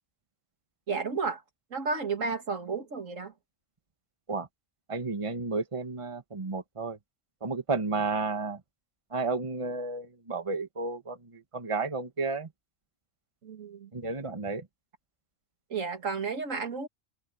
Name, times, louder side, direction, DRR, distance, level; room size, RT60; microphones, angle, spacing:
voice 1, 0.9-1.4 1.7-3.3 13.4-13.9 15.7-16.9, right 4 dB, 75° right, 2.2 m, -32 dB
voice 2, 4.9-7.0 7.4-8.6 9.1-12.5 13.9-14.7, right 3 dB, 25° right, 1.5 m, -32 dB
omnidirectional pair, 1.4 m